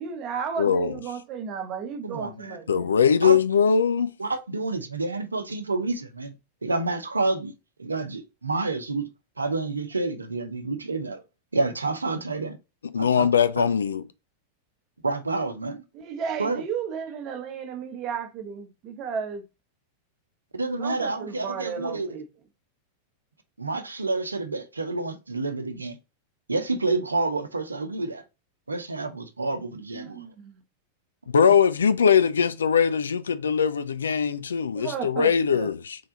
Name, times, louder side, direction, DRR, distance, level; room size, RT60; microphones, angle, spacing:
voice 1, 0.0-2.9 15.9-19.4 20.8-22.2 29.9-30.6 34.8-35.7, right 6 dB, 35° right, 0.9 m, -34 dB
voice 2, 0.6-0.9 2.7-4.1 12.9-14.0 31.3-36.0, left 7 dB, 70° left, 0.4 m, -21 dB
voice 3, 2.0-2.6 3.2-3.4 4.2-6.3 6.6-7.5 7.8-9.1 9.4-11.2 11.5-12.6 13.0-13.3 13.6-13.7 15.0-15.8 16.4-16.6 20.5-22.1 23.6-26.0 26.5-28.2 28.7-30.2, right 3 dB, 80° right, 0.6 m, -28 dB
3.8 x 3.4 x 3.8 m
figure-of-eight pair, 90°, 0 cm